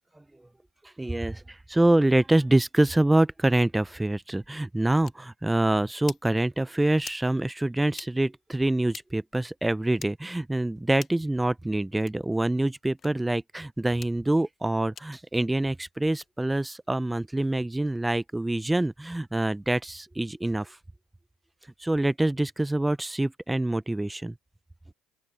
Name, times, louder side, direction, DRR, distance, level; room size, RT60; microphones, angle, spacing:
voice 1, 0.8-20.8 21.8-24.3, right 1 dB, 10° right, 0.6 m, -25 dB
sound 1, 5.0-5.2 6.0-6.3 7.0-7.2 7.9-8.1 8.9-9.1 9.9-10.1 10.9-11.2 12.0-12.2 13.0-13.1 13.9-14.1 14.9-15.1 16.1-16.3, left 7 dB, 40° left, 0.7 m, -43 dB
open air
supercardioid pair, 80°, 0 cm